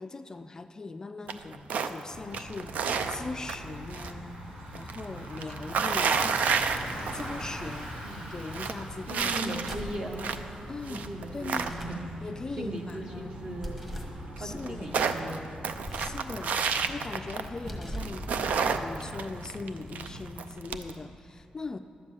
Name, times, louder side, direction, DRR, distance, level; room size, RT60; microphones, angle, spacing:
voice 1, 0.0-4.4 4.7-6.7 7.1-7.9 8.3-9.6 10.7-11.8 12.2-13.3 14.4-15.0 16.0-16.6 16.9-18.3 18.6-21.8, left 3 dB, 25° left, 9 dB, 0.3 m, -40 dB
sound 1, 1.3-2.0 2.3-4.1 4.4-7.4 7.7-7.8 8.2-10.5 10.9-12.1 13.7-13.8 14.0-14.1 14.4-17.7 18.0-20.9, right 6 dB, 90° right, 0.5 m, -30 dB
Bicycle, 2.1-20.3, equal, 70° right, 2.0 m, -43 dB
voice 2, 8.0-8.4 9.1-10.3 10.9-12.3 12.6-13.8 14.4-15.4 16.7-16.8, right 1 dB, 40° right, 2 dB, 1.3 m, -38 dB
sound 2, 9.7-10.1 11.5-12.1 13.6-14.2 15.8-16.3 17.5-18.2, equal, 15° right, 1.5 m, -39 dB
11.5 x 7.2 x 8.2 m, 2.8 s
wide cardioid pair, 145°, 2 cm